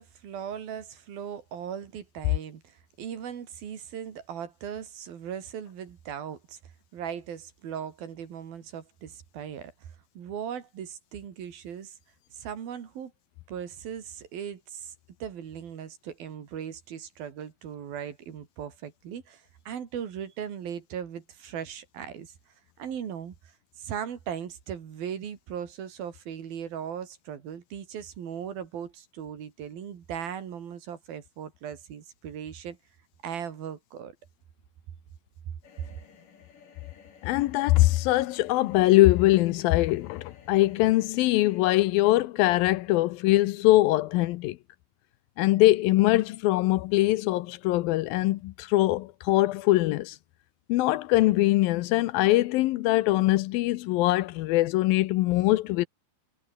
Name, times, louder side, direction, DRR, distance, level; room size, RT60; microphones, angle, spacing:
voice 1, 0.0-9.7 10.2-12.0 12.3-13.1 13.5-14.9 15.2-22.3 22.8-32.8 33.2-34.2, right 8 dB, 75° right, 4.5 m, -38 dB
sound 1, 35.6-41.6, left 6 dB, 60° left, 5.2 m, -55 dB
voice 2, 37.2-44.6 45.4-50.2 50.7-55.9, left 17 dB, 80° left, 2.4 m, -22 dB
omnidirectional pair, 4.3 m